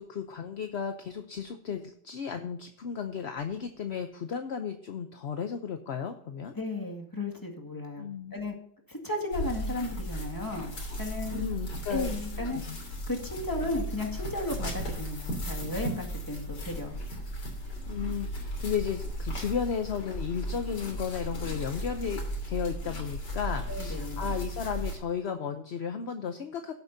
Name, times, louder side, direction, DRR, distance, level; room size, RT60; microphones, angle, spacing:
voice 1, 0.0-6.5 8.0-8.3 11.3-12.8 17.9-22.2 22.5-26.7, left 7 dB, 50° left, 7 dB, 0.8 m, -34 dB
voice 2, 6.5-8.0 8.3-8.5 8.9-10.7 11.0-11.4 11.9-12.6 13.1-16.9 23.7-24.2, left 2 dB, 10° left, 1 dB, 2.0 m, -34 dB
sound 1, 9.3-25.0, equal, 75° left, 3.6 m, -36 dB
16.0 x 8.1 x 2.7 m, 0.69 s
omnidirectional pair, 1.9 m